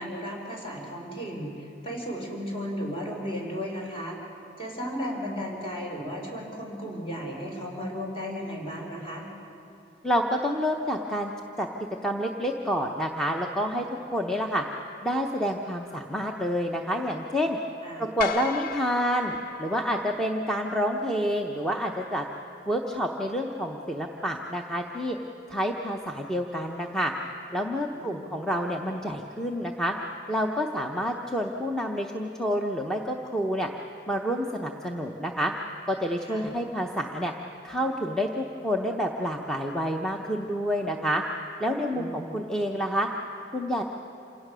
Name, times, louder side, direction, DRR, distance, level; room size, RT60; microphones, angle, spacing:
voice 1, 0.0-4.2 4.6-9.3 17.8-18.1 27.9-28.3 36.2-36.5 41.9-42.3, equal, 30° left, -1 dB, 4.1 m, -35 dB
voice 2, 10.0-11.3 11.6-11.7 12.0-13.8 14.1-14.6 15.0-17.6 18.0-22.2 22.7-25.2 25.5-27.1 27.5-29.9 30.3-33.7 34.1-35.5 35.9-37.3 37.6-41.2 41.6-43.1 43.5-43.8, equal, 5° left, 1 dB, 0.8 m, -28 dB
sound 1, 18.2-20.6, left 7 dB, 55° left, 0.6 m, -36 dB
27.0 x 17.5 x 6.2 m, 2.8 s
head